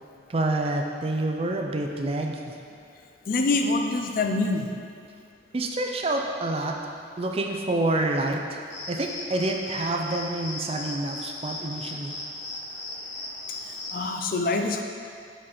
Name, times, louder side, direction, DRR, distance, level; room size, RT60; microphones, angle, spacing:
voice 1, 0.3-2.4 5.5-6.7 7.2-8.6 8.9-12.1, right 2 dB, 30° right, 2 dB, 0.4 m, -27 dB
voice 2, 3.3-4.7 13.7-14.8, left 3 dB, 50° left, 4 dB, 0.4 m, -25 dB
sound 1, 8.7-14.1, left 2 dB, 75° left, 0.9 m, -37 dB
5.3 x 4.2 x 5.5 m, 2.3 s
head